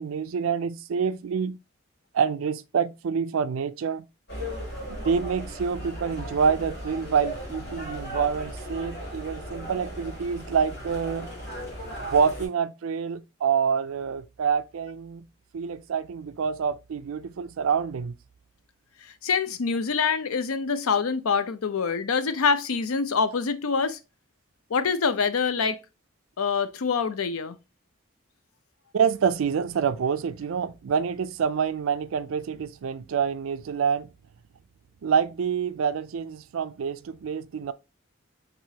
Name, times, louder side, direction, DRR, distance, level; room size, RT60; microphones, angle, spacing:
voice 1, 0.0-1.6 2.1-4.1 4.9-11.3 12.0-15.2 15.5-18.1 28.9-34.1 35.0-37.7, right 6 dB, 80° right, 0.4 m, -27 dB
sound 1, 4.3-12.5, equal, 50° left, 2.1 m, -36 dB
voice 2, 19.0-24.0 24.7-25.8 26.4-27.6, left 5 dB, 90° left, 0.5 m, -25 dB
4.7 x 3.9 x 2.8 m
head